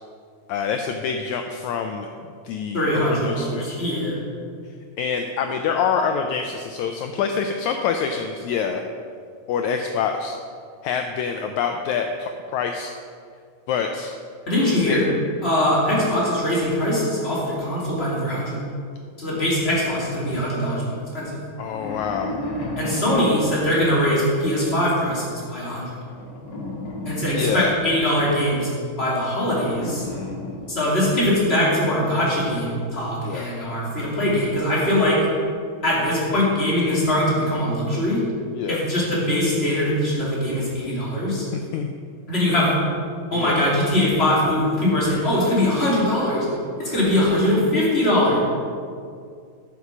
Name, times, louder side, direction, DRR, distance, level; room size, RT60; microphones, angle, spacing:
voice 1, 0.5-2.1 2.4-3.8 5.0-8.8 9.5-10.4 10.8-12.9 13.7-14.1 14.9-15.0 15.9-16.0 21.6-22.4 27.2-27.7 30.0-30.6 33.2-33.5 38.5-38.8 41.7-41.9 43.3-43.6, left 6 dB, 85° left, 5 dB, 1.6 m, -26 dB
voice 2, 2.7-4.2 14.5-15.0 15.4-18.6 19.2-21.4 22.8-26.0 27.0-28.7 29.0-30.1 30.7-35.2 35.8-38.2 38.7-41.5 42.3-42.7 43.3-46.5 46.8-48.4, left 1 dB, 20° left, -7 dB, 2.7 m, -22 dB
sound 1, 19.4-20.9 21.5-24.6 26.1-28.7 29.3-31.3, left 1 dB, 60° left, 1.1 m, -34 dB
9.5 x 6.8 x 6.0 m, 2.2 s
omnidirectional pair, 3.9 m